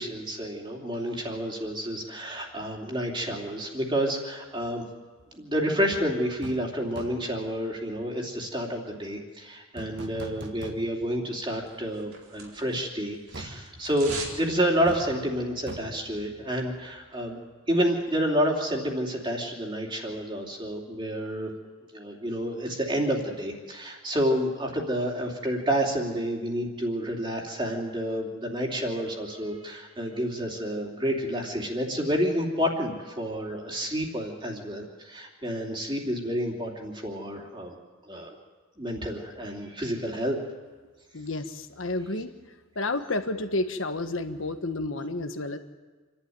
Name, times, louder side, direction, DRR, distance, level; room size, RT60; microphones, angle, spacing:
voice 1, 0.0-4.8 5.3-17.4 17.7-21.5 21.9-37.7 38.1-38.3 38.8-40.4, equal, 25° right, 0 dB, 3.0 m, -29 dB
sound 1, 5.9-6.1 6.4-6.7 7.0-7.4 9.8-11.2 11.6-11.7 13.3-17.0 17.3-17.4, right 1 dB, 55° right, 2.0 m, -42 dB
sound 2, 11.7-12.9 13.1-14.4 14.7-14.8, right 4 dB, 85° right, 4.3 m, -39 dB
voice 2, 41.1-42.3 42.7-45.6, left 2 dB, 65° left, 8 dB, 1.4 m, -30 dB
27.5 x 11.5 x 9.5 m, 1.4 s
head